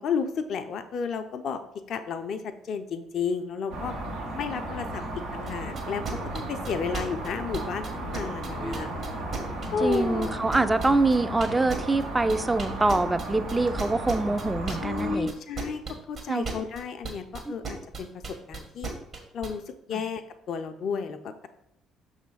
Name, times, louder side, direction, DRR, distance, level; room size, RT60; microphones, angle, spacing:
voice 1, 0.0-1.6 1.9-3.9 4.3-5.0 5.3-8.9 9.7-10.3 14.7-15.8 16.1-18.2 18.5-18.9 19.3-20.2 20.5-21.5, left 6 dB, 60° left, 7 dB, 0.5 m, -32 dB
sound 1, 3.7-15.2, right 1 dB, 80° right, 1.2 m, -35 dB
sound 2, 5.4-19.5, right 4 dB, 55° right, 1.8 m, -35 dB
voice 2, 9.8-15.3 16.3-16.5 17.5-17.6 19.9-20.0, right 2 dB, 20° right, 11 dB, 0.5 m, -25 dB
5.9 x 3.2 x 5.5 m, 0.82 s
hypercardioid pair, 55°, 0 cm